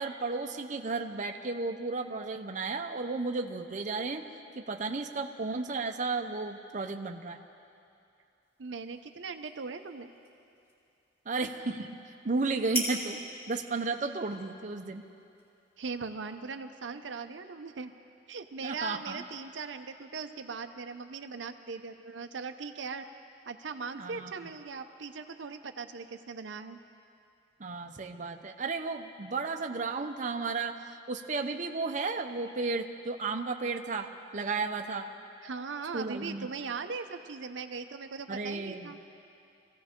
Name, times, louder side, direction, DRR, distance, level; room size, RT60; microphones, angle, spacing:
voice 1, 0.0-4.2 4.6-7.4 11.3-11.9 12.2-13.2 13.5-15.0 18.6-19.2 23.9-24.3 27.6-30.8 31.1-35.1 35.9-36.5 38.3-38.9, right 3 dB, 45° right, 4 dB, 0.7 m, -33 dB
sound 1, 8.4-16.1, right 1 dB, 15° left, 3.3 m, -43 dB
voice 2, 8.6-10.1 15.8-17.9 18.3-23.0 23.5-26.8 35.4-39.0, right 4 dB, 85° right, 7 dB, 0.7 m, -39 dB
24.5 x 16.0 x 3.7 m, 2.6 s
head